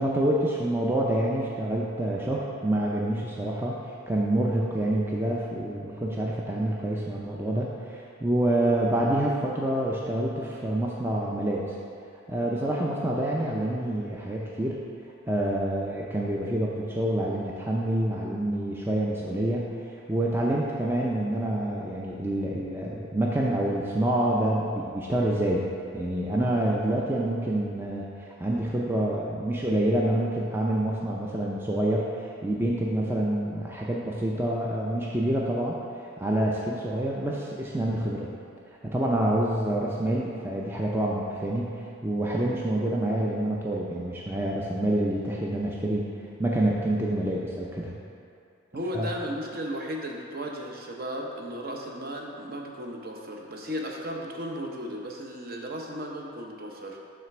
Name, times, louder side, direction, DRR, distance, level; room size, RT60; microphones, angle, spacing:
voice 1, 0.0-11.7 12.3-14.8 15.3-25.6 25.9-35.8 36.2-38.3 38.8-46.1 46.4-47.9 48.9-49.1, right 1 dB, 10° right, -4 dB, 0.4 m, -27 dB
voice 2, 48.7-57.0, equal, 45° right, 0 dB, 0.8 m, -35 dB
7.3 x 3.3 x 5.9 m, 2.5 s
head